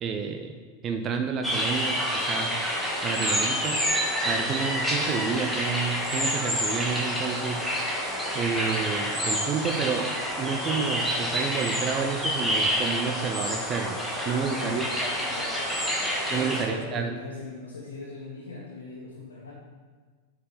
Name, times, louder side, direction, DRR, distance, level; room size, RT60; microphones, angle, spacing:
voice 1, 0.0-2.6 3.0-3.8 4.2-7.6 8.3-10.1 10.4-14.0 14.3-15.1 16.3-17.2, right 6 dB, 30° right, 5 dB, 0.6 m, -30 dB
sound 1, 1.4-16.6, equal, ahead, 1.8 m, -28 dB
voice 2, 14.3-14.8 15.1-15.7 16.2-19.5, left 3 dB, 70° left, -5 dB, 1.5 m, -40 dB
8.2 x 4.8 x 5.6 m, 1.5 s
figure-of-eight pair, 90°, 0 cm